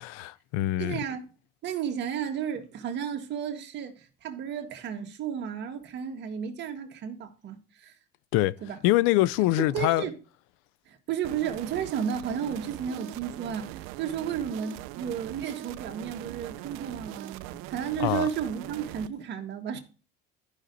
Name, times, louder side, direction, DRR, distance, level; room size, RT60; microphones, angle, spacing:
voice 1, 0.2-1.0 8.3-8.6 8.8-10.1 18.0-18.3, left 16 dB, 85° left, 0.5 m, -24 dB
voice 2, 0.8-1.2 1.6-7.9 8.6-8.8 9.6-10.1 10.9-19.8, right 8 dB, 55° right, 1.7 m, -33 dB
sound 1, 11.2-19.1, right 16 dB, 80° right, 0.5 m, -41 dB
13.0 x 5.7 x 3.9 m
cardioid pair, 110°, 21 cm